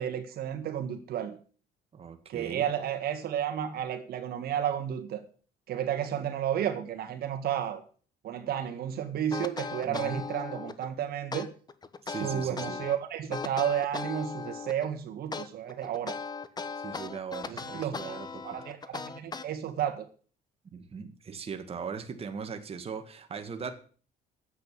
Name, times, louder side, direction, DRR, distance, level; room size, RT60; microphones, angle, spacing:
voice 1, 0.0-1.4 2.3-5.2 5.7-7.8 8.2-11.5 12.2-16.2 17.5-20.1, right 10 dB, 65° right, 1.7 m, -32 dB
voice 2, 1.9-2.7 9.9-10.3 12.1-12.8 16.7-18.4 20.7-23.8, right 6 dB, 35° right, 1.9 m, -39 dB
sound 1, 9.3-10.9 11.3-13.0 13.3-14.9 15.3-19.9, left 4 dB, 25° left, 1.2 m, -37 dB
10.5 x 8.2 x 8.5 m
cardioid pair, 110°, 17 cm